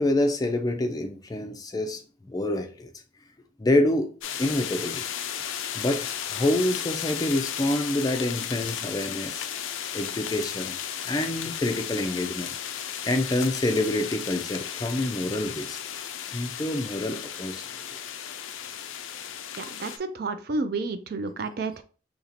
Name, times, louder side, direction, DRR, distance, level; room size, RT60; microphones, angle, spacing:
voice 1, 0.0-2.9 3.6-4.1 4.4-5.0 5.3-10.8 11.0-12.5 13.0-15.8 16.3-17.6 17.9-18.0, left 1 dB, 20° left, 0.4 m, -27 dB
sound 1, 4.2-20.0, left 9 dB, 80° left, 0.4 m, -34 dB
voice 2, 19.6-21.8, right 3 dB, 50° right, 0.4 m, -31 dB
2.9 x 2.7 x 4.2 m
head